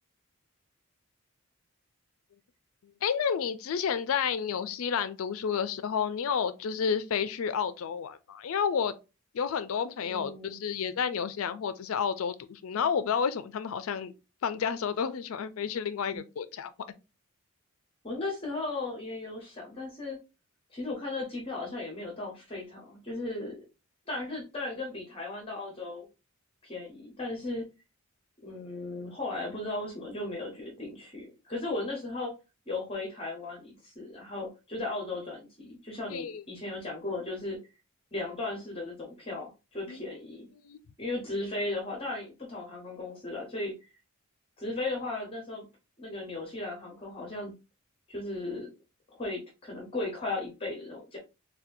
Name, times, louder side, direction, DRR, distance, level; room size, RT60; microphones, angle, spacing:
voice 1, 3.0-8.9 9.3-14.1 14.4-16.7 36.1-36.4 39.9-40.0 40.6-40.8, left 7 dB, 70° left, 0.4 m, -30 dB
voice 2, 10.0-10.6 18.0-20.2 20.7-23.6 24.1-26.1 26.6-27.6 28.4-32.3 32.7-37.6 38.1-40.5 41.0-43.8 44.6-45.7 46.0-47.5 48.1-48.7 49.1-51.2, left 2 dB, 25° left, 0.8 m, -36 dB
4.2 x 2.2 x 2.6 m
head